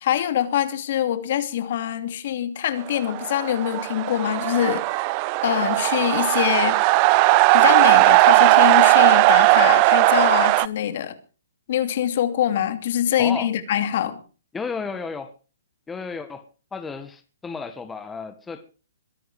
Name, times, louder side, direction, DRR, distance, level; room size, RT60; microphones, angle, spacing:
voice 1, 0.0-5.0 5.4-6.8 7.5-11.2 11.7-14.2, left 10 dB, 55° left, 2.7 m, -24 dB
sound 1, 3.0-10.7, right 21 dB, 35° right, 0.7 m, -17 dB
voice 2, 13.2-13.5 14.5-15.3 15.9-16.4 16.7-18.7, left 5 dB, 10° left, 1.6 m, -33 dB
22.5 x 10.5 x 4.9 m
hypercardioid pair, 145°, 0 cm